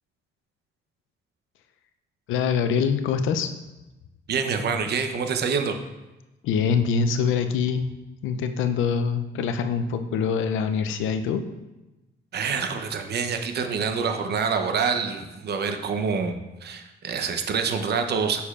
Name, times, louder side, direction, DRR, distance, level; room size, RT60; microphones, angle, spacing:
voice 1, 2.3-3.5 6.4-7.9 8.2-11.5, left 6 dB, 85° left, 8 dB, 0.5 m, -24 dB
voice 2, 4.3-5.8 12.3-18.4, right 5 dB, 55° right, 7 dB, 0.8 m, -26 dB
6.8 x 6.5 x 2.4 m, 1.0 s
cardioid pair, 90°, 20 cm